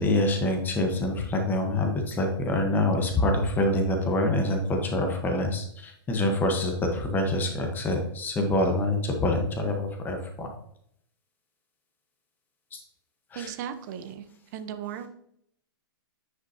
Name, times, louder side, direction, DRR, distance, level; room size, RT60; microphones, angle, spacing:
voice 1, 0.0-10.5 12.7-12.8 13.3-13.5, left 1 dB, 15° left, 3 dB, 1.1 m, -26 dB
voice 2, 13.3-14.2 14.5-15.1, right 9 dB, 45° right, 9 dB, 0.9 m, -36 dB
9.9 x 5.1 x 2.8 m, 0.70 s
hypercardioid pair, 125°, 12 cm